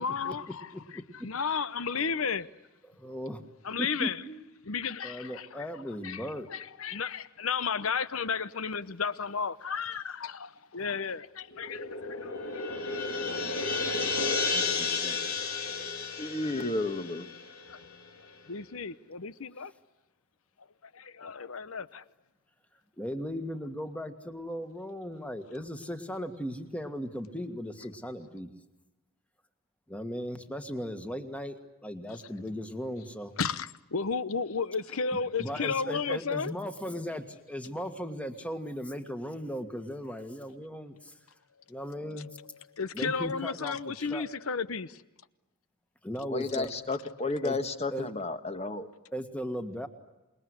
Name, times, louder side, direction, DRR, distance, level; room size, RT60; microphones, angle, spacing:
voice 1, 0.0-2.5 3.6-4.2 4.7-12.6 13.2-13.4 17.7-17.8 18.5-19.7 20.6-22.0 32.1-32.2 33.4-36.5 42.0-45.0, left 5 dB, 65° left, 0.9 m, -33 dB
voice 2, 2.9-3.4 3.8-4.4 5.0-6.5 14.5-15.2 23.0-28.5 29.9-33.4 35.4-41.1 41.7-42.4 42.9-44.3 46.0-46.7 47.4-47.6 47.9-48.1 49.1-49.9, equal, 5° left, 1.8 m, -37 dB
sound 1, 11.5-18.1, left 4 dB, 85° left, 3.2 m, -32 dB
voice 3, 16.2-17.3 46.3-48.9, left 2 dB, 30° left, 1.5 m, -32 dB
27.5 x 21.0 x 9.7 m
head